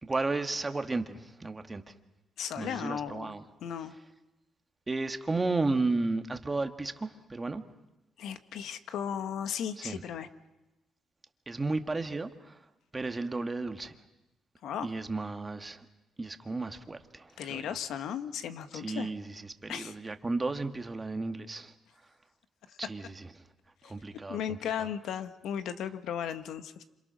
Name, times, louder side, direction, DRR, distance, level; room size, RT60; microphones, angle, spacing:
voice 1, 0.0-1.9 2.6-3.4 4.9-7.6 9.8-10.0 11.5-12.6 12.9-13.9 14.8-15.9 16.2-17.7 18.7-21.7 22.8-23.3 23.8-24.9, right 3 dB, 20° right, 1.8 m, -33 dB
voice 2, 2.4-3.3 3.6-3.9 8.2-10.3 14.6-14.9 17.4-19.1 19.7-19.9 22.7-22.8 23.8-26.8, left 9 dB, 80° left, 1.4 m, -36 dB
28.0 x 27.0 x 6.4 m
cardioid pair, 90°, 0 cm